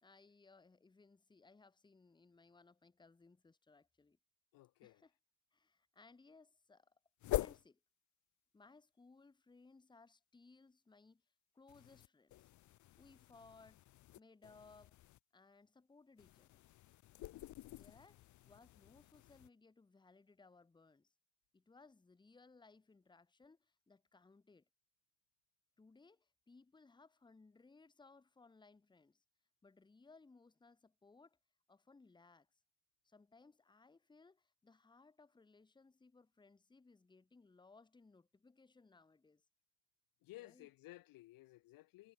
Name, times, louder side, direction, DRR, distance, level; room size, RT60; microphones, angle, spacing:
voice 1, 0.0-4.2 4.8-5.1 5.5-7.0 7.3-7.8 8.5-11.2 11.5-12.5 13.0-13.8 14.1-15.0 15.3-16.6 17.7-21.1 21.5-24.7 25.8-29.2 29.6-31.4 31.7-32.5 33.0-39.4 40.4-40.7, left 3 dB, 15° left, 1.0 m, -64 dB
voice 2, 4.5-5.0 40.2-42.1, left 18 dB, 85° left, 0.9 m, -57 dB
sound 1, 7.2-7.6 11.7-15.2 16.2-19.5, left 15 dB, 60° left, 0.6 m, -45 dB
cardioid pair, 105°, 34 cm